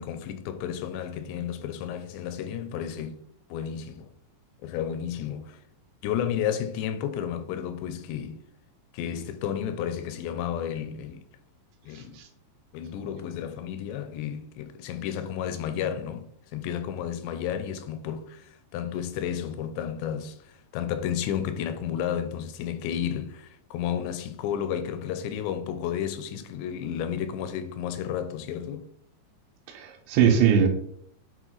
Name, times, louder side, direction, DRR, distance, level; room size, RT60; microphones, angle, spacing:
voice 1, 0.0-3.2 3.5-4.1 4.6-5.6 6.0-8.4 8.9-11.2 11.8-12.2 12.7-16.3 16.5-28.9, left 9 dB, 85° left, 2.8 m, -32 dB
voice 2, 29.7-30.7, right 7 dB, 85° right, 3.3 m, -21 dB
9.2 x 4.5 x 3.9 m
omnidirectional pair, 5.1 m